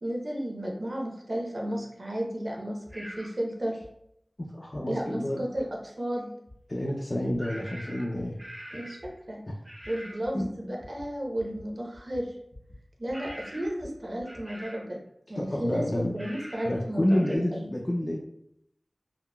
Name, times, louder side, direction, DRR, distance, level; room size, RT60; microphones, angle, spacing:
voice 1, 0.0-3.8 4.9-6.3 8.7-9.4 9.9-12.3 13.0-15.0 15.3-15.8 16.1-17.7, right 1 dB, 60° right, -1 dB, 0.7 m, -33 dB
sound 1, 2.9-3.0 3.8-3.9 4.7-4.8 5.5-5.6 6.5-6.6 7.3-7.4 8.2-8.3 9.0-9.1 9.8-9.9 10.2-10.5 10.8-11.1 11.3-11.7 11.9-12.8 13.1-14.5, left 1 dB, 65° left, 0.8 m, -49 dB
sound 2, 2.9-3.3 7.4-9.1 9.6-10.2 13.1-13.8 14.2-14.9 16.2-16.8 17.1-17.4, equal, 15° right, 0.5 m, -44 dB
voice 2, 4.4-5.4 6.7-8.4 10.3-10.5 15.4-16.1 16.6-18.2, left 1 dB, 45° left, -2 dB, 0.4 m, -29 dB
3.8 x 2.1 x 2.2 m, 0.74 s
wide cardioid pair, 50°, 0 cm